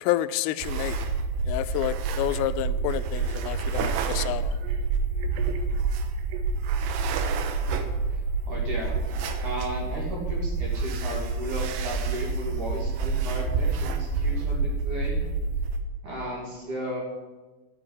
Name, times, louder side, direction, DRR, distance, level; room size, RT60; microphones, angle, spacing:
voice 1, 0.0-1.0 1.5-4.6, left 14 dB, 85° left, 13 dB, 3.2 m, -29 dB
sound 1, 0.6-15.8, right 4 dB, 75° right, 2.9 m, -28 dB
voice 2, 8.1-9.0 9.4-15.2 16.0-17.0, equal, 45° right, -2 dB, 3.5 m, -35 dB
12.0 x 7.9 x 9.8 m, 1.2 s
omnidirectional pair, 5.8 m